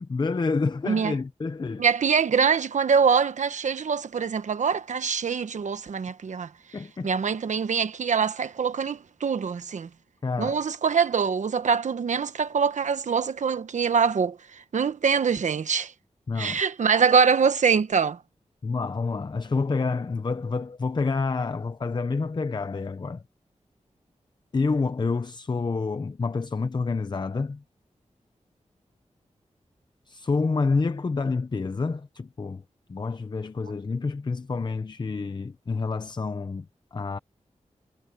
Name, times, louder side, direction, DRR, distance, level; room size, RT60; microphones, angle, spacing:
voice 1, 0.0-1.9 6.7-7.1 10.2-10.6 16.3-16.6 18.6-23.2 24.5-27.6 30.1-32.6 32.9-37.2, left 4 dB, 40° left, 0.7 m, -28 dB
voice 2, 1.8-6.5 7.0-9.9 10.4-15.9 16.4-18.2, right 6 dB, 85° right, 1.2 m, -24 dB
wide cardioid pair, 120°, 12 cm